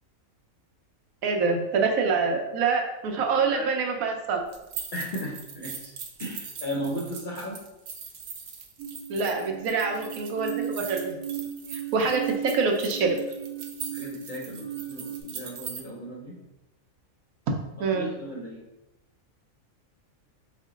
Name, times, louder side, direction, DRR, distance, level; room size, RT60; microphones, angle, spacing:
voice 1, 1.2-4.4 9.1-11.2 11.7-13.2 17.8-18.1, right 4 dB, 80° right, 3 dB, 1.1 m, -26 dB
voice 2, 3.3-3.7 4.9-5.9 6.2-7.6 13.9-16.4 17.7-18.6, equal, 50° left, -3 dB, 0.6 m, -36 dB
sound 1, 4.5-15.8, right 6 dB, 60° right, 0.6 m, -41 dB
sound 2, 8.8-15.2, right 9 dB, 15° right, 0.5 m, -36 dB
4.4 x 2.1 x 3.6 m, 0.93 s
omnidirectional pair, 1.5 m